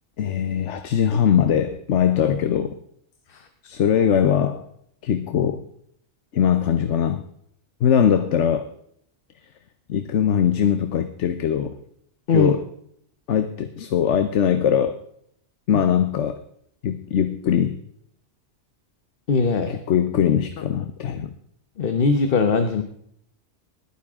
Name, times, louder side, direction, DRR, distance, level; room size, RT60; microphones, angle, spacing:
voice 1, 0.2-2.8 3.6-4.7 5.0-5.6 6.3-7.2 7.8-8.7 9.9-11.8 12.3-12.6 13.3-15.0 15.7-16.4 16.8-17.8 19.7-21.3, left 8 dB, 90° left, 10 dB, 1.1 m, -21 dB
voice 2, 19.3-19.8 21.8-22.8, left 4 dB, 55° left, 7 dB, 1.1 m, -20 dB
20.0 x 10.0 x 3.6 m, 0.68 s
omnidirectional pair, 1.2 m